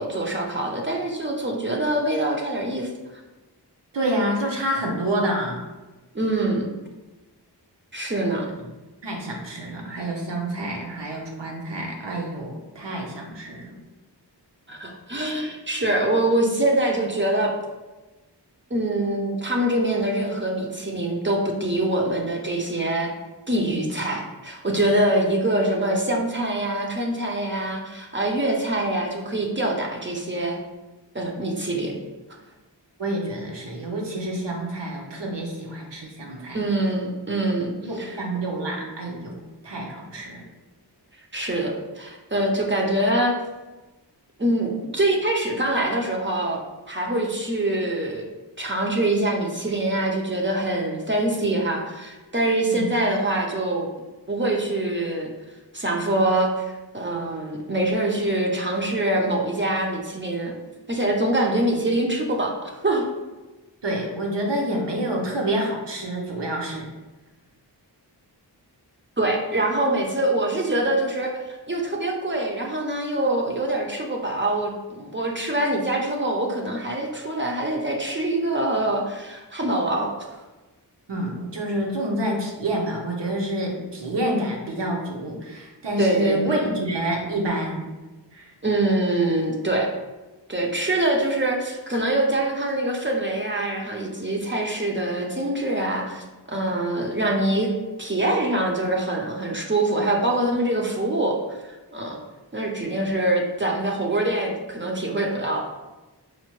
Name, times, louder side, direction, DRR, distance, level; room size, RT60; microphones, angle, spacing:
voice 1, 0.0-2.9 6.1-6.7 7.9-8.5 14.7-17.5 18.7-23.1 23.5-30.6 31.1-32.0 36.5-38.2 41.3-43.3 44.4-46.6 46.9-48.2 48.6-53.9 54.3-55.3 55.7-56.7 56.9-60.5 60.9-63.1 69.2-71.4 71.7-80.4 86.0-86.7 88.6-89.9 90.5-97.7 98.0-101.6 101.9-102.2 102.5-105.6, right 1 dB, 30° right, 0 dB, 0.5 m, -24 dB
voice 2, 3.9-5.6 8.5-8.6 9.0-13.7 33.0-36.6 37.8-40.4 52.7-52.9 63.8-66.9 81.1-87.9 88.3-88.5, right 1 dB, 75° right, -1 dB, 0.8 m, -28 dB
4.2 x 2.1 x 3.0 m, 1.1 s
wide cardioid pair, 55°, 42 cm